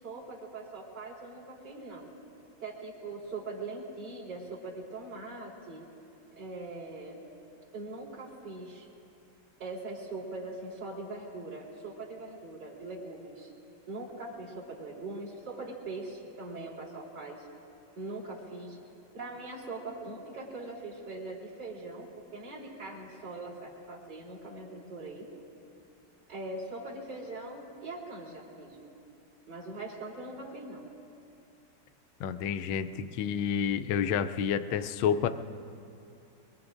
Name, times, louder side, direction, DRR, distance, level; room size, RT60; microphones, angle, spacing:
voice 1, 0.0-2.1 2.6-5.8 6.4-7.2 7.7-8.9 9.6-13.5 13.9-17.5 18.0-18.8 19.1-25.3 26.3-28.9 29.5-30.8, right 2 dB, 55° right, -6 dB, 4.1 m, -41 dB
voice 2, 32.2-35.3, left 8 dB, 75° left, 8 dB, 1.3 m, -29 dB
23.5 x 23.0 x 2.5 m, 2.7 s
omnidirectional pair, 2.3 m